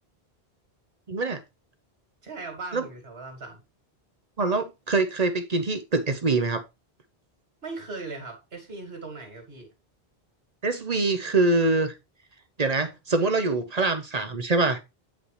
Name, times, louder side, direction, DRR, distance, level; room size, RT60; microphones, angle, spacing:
voice 1, 1.1-1.4 2.7-2.9 4.4-6.6 10.6-11.9 12.6-14.8, right 3 dB, 40° right, 0.9 m, -24 dB
voice 2, 2.2-3.6 7.6-9.7, right 3 dB, 75° right, 2.6 m, -38 dB
8.6 x 5.2 x 3.2 m
omnidirectional pair, 1.1 m